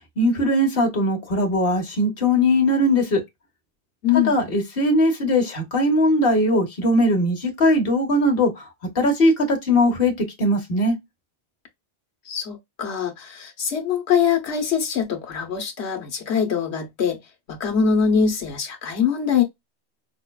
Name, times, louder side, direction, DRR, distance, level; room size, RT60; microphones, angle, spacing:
voice 1, 0.2-3.2 4.1-8.6 8.9-10.1 10.4-11.0, left 1 dB, 60° left, 1.4 m, -20 dB
voice 2, 4.0-4.3 12.3-17.2 17.5-19.4, left 7 dB, 80° left, 1.3 m, -23 dB
5.5 x 2.2 x 2.2 m
omnidirectional pair, 1.1 m